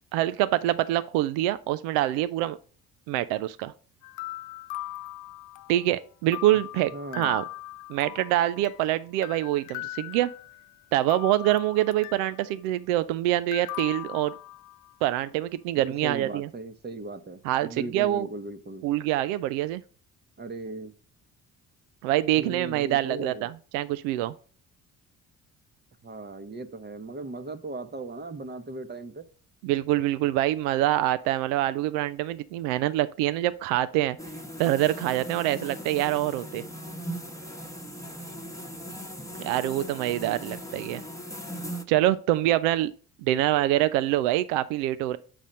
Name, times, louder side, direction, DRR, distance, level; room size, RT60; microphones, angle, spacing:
voice 1, 0.1-2.6 3.1-3.7 5.7-7.4 7.9-10.3 10.9-14.3 15.0-16.5 17.4-18.3 18.8-19.8 22.0-24.3 29.6-34.2 34.6-36.6 39.4-41.0 41.9-42.9 43.2-45.2, right 14 dB, 65° right, 0.5 m, -25 dB
sound 1, 4.0-5.9 6.3-8.9 9.2-10.7 11.1-12.5 13.5-14.9, left 17 dB, 65° left, 0.5 m, -39 dB
voice 2, 6.9-7.4 15.7-18.9 20.4-20.9 22.4-23.5 26.0-29.3, right 2 dB, 20° right, 0.9 m, -38 dB
sound 2, 34.2-41.8, equal, 5° left, 1.1 m, -39 dB
7.6 x 4.1 x 5.2 m
figure-of-eight pair, 50°, 47 cm